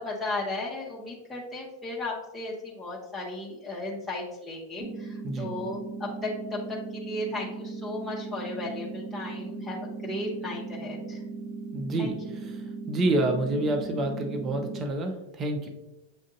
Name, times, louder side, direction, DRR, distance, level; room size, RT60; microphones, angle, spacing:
voice 1, 0.0-11.2 12.0-12.1, left 2 dB, 10° left, -5 dB, 0.9 m, -35 dB
sound 1, 4.8-14.8, right 4 dB, 70° right, 1.2 m, -38 dB
voice 2, 11.7-12.1 12.9-15.7, right 2 dB, 30° right, 4 dB, 0.7 m, -28 dB
7.5 x 2.5 x 2.6 m, 0.97 s
hypercardioid pair, 95°, 0 cm